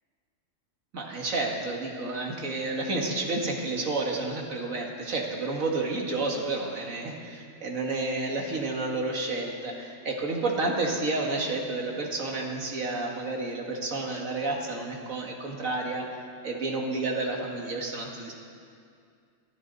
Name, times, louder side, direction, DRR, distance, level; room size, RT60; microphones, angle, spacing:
voice 1, 0.9-16.0 16.4-18.3, right 2 dB, 75° right, 0 dB, 2.2 m, -30 dB
23.5 x 13.0 x 4.1 m, 2.3 s
omnidirectional pair, 1.4 m